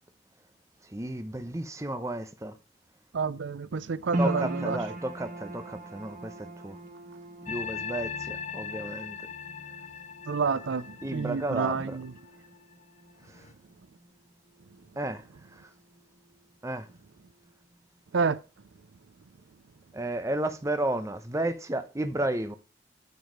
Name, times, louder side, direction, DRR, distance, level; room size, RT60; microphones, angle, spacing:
voice 1, 0.9-2.5 4.2-6.8 7.5-9.2 11.0-12.0 15.0-15.2 15.5-15.7 16.6-16.9 19.9-22.6, right 1 dB, 15° right, 0.8 m, -32 dB
voice 2, 3.1-4.8 10.3-12.1 18.1-18.4, right 5 dB, 85° right, 0.5 m, -29 dB
sound 1, 4.1-16.5 16.8-17.7 18.2-18.3, right 1 dB, 45° right, 1.3 m, -40 dB
sound 2, 7.5-12.7 13.3-13.5, left 7 dB, 40° left, 0.5 m, -40 dB
9.4 x 4.7 x 4.9 m
head